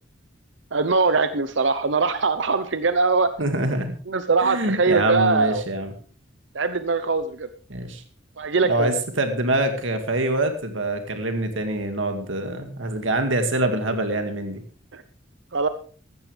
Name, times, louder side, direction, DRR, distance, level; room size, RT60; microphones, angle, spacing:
voice 1, 0.7-3.3 4.1-5.6 6.5-7.5 8.4-8.9 14.9-15.0 15.5-15.7, right 4 dB, 70° right, 11 dB, 0.8 m, -22 dB
voice 2, 3.4-3.9 4.4-5.9 7.7-8.0 8.6-14.6, right 1 dB, 85° right, 6 dB, 2.2 m, -25 dB
15.5 x 13.0 x 3.4 m, 0.42 s
head